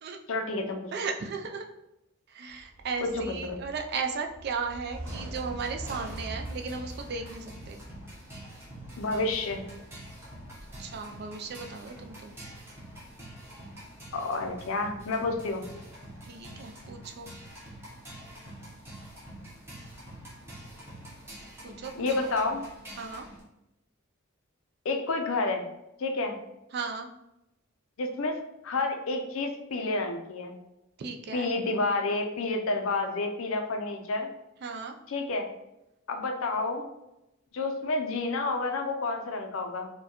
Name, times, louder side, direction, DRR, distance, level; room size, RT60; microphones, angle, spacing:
voice 1, 0.3-0.8 3.0-3.6 9.0-9.6 14.1-15.6 22.0-22.6 24.8-25.6 26.0-26.4 28.0-28.4 28.6-30.6 31.3-34.3 35.1-35.5 36.1-36.9 37.5-39.9, left 3 dB, 70° left, 5 dB, 0.5 m, -29 dB
voice 2, 0.9-1.7 2.3-7.8 10.8-12.4 16.2-17.3 21.6-22.3 23.0-23.3 26.7-27.1 31.0-31.5 34.6-35.0, right 5 dB, 50° right, 4 dB, 0.4 m, -36 dB
sound 1, 2.5-11.0, right 1 dB, 85° right, 0.7 m, -44 dB
sound 2, 5.0-23.4, right 1 dB, 10° right, 0.9 m, -46 dB
4.5 x 2.2 x 2.9 m, 0.92 s
head